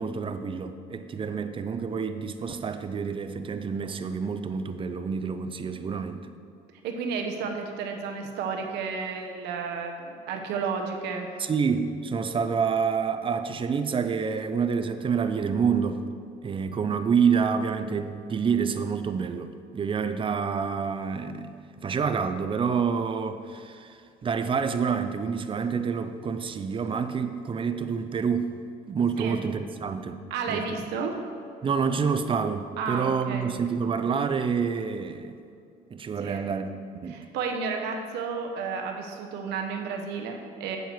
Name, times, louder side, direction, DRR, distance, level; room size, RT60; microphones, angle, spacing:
voice 1, 0.0-6.3 11.4-16.0 16.4-21.5 21.8-28.5 28.9-30.2 30.5-30.8 31.6-35.4 35.9-36.7 37.0-37.1, right 6 dB, 30° right, 10 dB, 0.5 m, -28 dB
voice 2, 6.8-11.5 29.2-29.4 30.3-31.2 32.8-33.5 36.2-36.5 37.1-40.8, right 5 dB, 85° right, 3 dB, 1.0 m, -32 dB
7.9 x 7.1 x 4.5 m, 2.4 s
cardioid pair, 110°, 17 cm